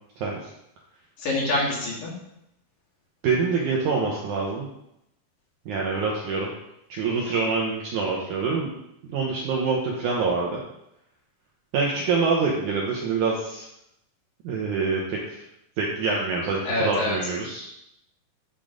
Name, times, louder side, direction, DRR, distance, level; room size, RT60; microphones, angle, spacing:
voice 1, 0.2-0.5 3.2-4.7 5.7-6.5 6.9-8.7 9.0-10.6 11.7-13.7 14.4-15.4 15.8-17.7, right 4 dB, 75° right, -2 dB, 1.9 m, -25 dB
voice 2, 1.2-2.1 16.7-17.3, left 1 dB, 60° left, -5 dB, 3.7 m, -26 dB
10.5 x 3.8 x 5.1 m, 0.82 s
omnidirectional pair, 4.6 m